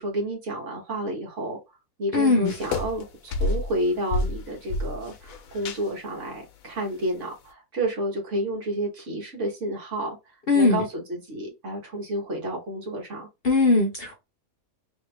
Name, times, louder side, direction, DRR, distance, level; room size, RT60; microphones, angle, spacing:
voice 1, 0.0-1.6 2.0-13.3, right 1 dB, 55° right, 1.8 m, -30 dB
voice 2, 2.1-2.5 10.5-10.8 13.4-14.1, left 3 dB, 50° left, 0.9 m, -20 dB
sound 1, 2.5-3.0 3.3-3.8 4.1-5.8, left 2 dB, 75° left, 1.1 m, -29 dB
3.3 x 2.8 x 3.3 m
omnidirectional pair, 1.5 m